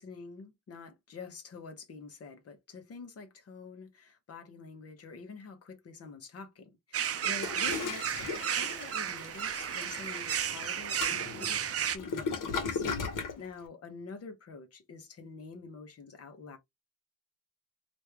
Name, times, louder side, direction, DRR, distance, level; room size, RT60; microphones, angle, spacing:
voice 1, 0.0-16.6, left 4 dB, 50° left, 0.9 m, -47 dB
sound 1, 6.9-12.0, right 9 dB, 50° right, 0.4 m, -33 dB
Toilet flush, 7.2-13.4, left 4 dB, 80° left, 1.1 m, -37 dB
3.0 x 2.6 x 3.4 m
wide cardioid pair, 165°, 31 cm